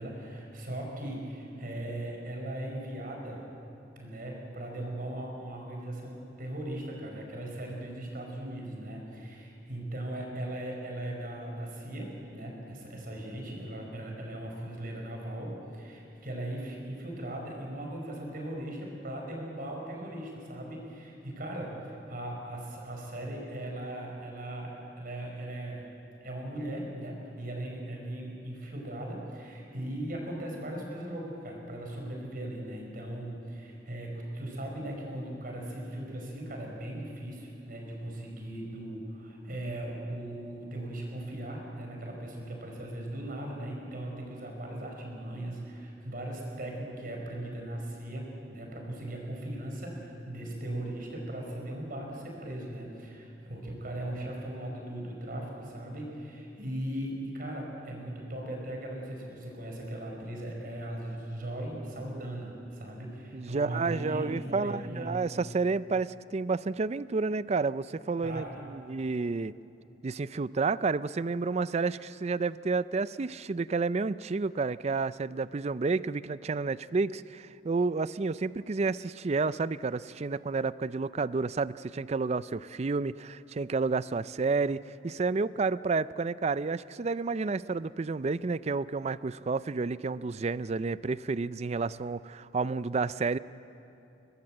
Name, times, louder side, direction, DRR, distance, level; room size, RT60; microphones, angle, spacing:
voice 1, 0.0-3.4 4.0-25.9 26.2-65.2 68.2-68.6, right 1 dB, 55° right, 0 dB, 5.2 m, -38 dB
voice 2, 63.3-69.5 70.0-93.4, right 4 dB, 40° right, 17 dB, 0.4 m, -30 dB
22.5 x 20.0 x 7.7 m, 2.7 s
head